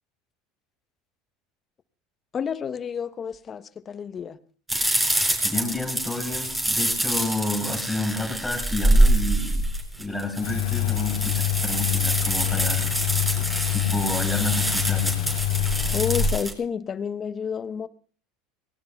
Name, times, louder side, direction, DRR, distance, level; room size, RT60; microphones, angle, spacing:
voice 1, 2.3-4.4 15.9-17.9, left 7 dB, 35° left, 14 dB, 0.9 m, -30 dB
sound 1, 4.7-16.5, right 1 dB, 10° right, 5.2 m, -25 dB
voice 2, 5.4-9.6 10.0-12.9 13.7-15.2, left 2 dB, 5° left, 2 dB, 3.7 m, -30 dB
Engine, 10.4-16.3, left 13 dB, 75° left, 3.8 m, -26 dB
28.5 x 19.0 x 2.3 m, 0.42 s
hypercardioid pair, 80°, 0 cm